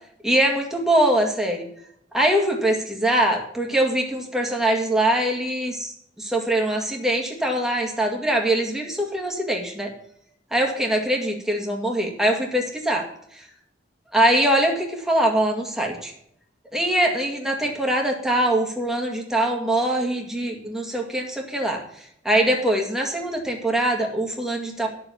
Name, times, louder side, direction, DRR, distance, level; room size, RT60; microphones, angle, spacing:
voice 1, 0.2-1.7 2.1-9.9 10.5-13.1 13.3-13.4 14.1-16.1 16.7-21.8 22.2-24.9, right 1 dB, 5° right, 1 dB, 2.1 m, -23 dB
12.0 x 6.7 x 7.0 m, 0.71 s
head